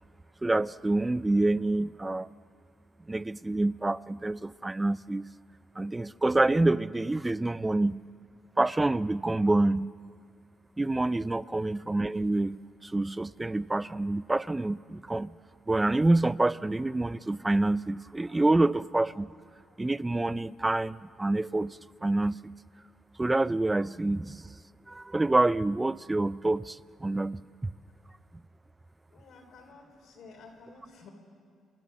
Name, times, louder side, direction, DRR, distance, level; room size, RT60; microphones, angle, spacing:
voice 1, 0.4-2.3 3.1-5.3 5.8-8.0 8.6-9.9 10.8-15.3 15.7-19.3 19.8-22.5 23.2-24.5 24.9-27.7, right 2 dB, 15° right, 18 dB, 0.4 m, -27 dB
voice 2, 29.1-31.1, left 4 dB, 70° left, 3 dB, 3.9 m, -52 dB
30.0 x 12.5 x 7.1 m, 2.2 s
cardioid pair, 90°, 0 cm